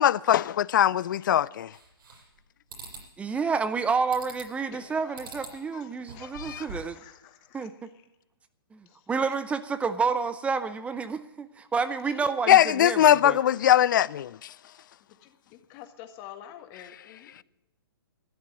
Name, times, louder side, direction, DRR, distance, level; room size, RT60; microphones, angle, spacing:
voice 1, 0.0-1.8 6.3-6.6 12.5-14.5, left 11 dB, 55° left, 0.4 m, -21 dB
sound 1, 1.7-2.4 2.7-3.1 4.1-4.6 5.1-5.6 6.0-7.0, right 3 dB, 65° right, 7.5 m, -43 dB
voice 2, 3.2-7.0 7.5-7.9 8.7-13.4, right 5 dB, 10° right, 0.7 m, -29 dB
voice 3, 4.7-7.7 8.8-9.1 12.0-12.5 15.2-17.4, left 11 dB, 35° left, 1.7 m, -48 dB
12.5 x 10.5 x 8.0 m
hypercardioid pair, 130°, 13 cm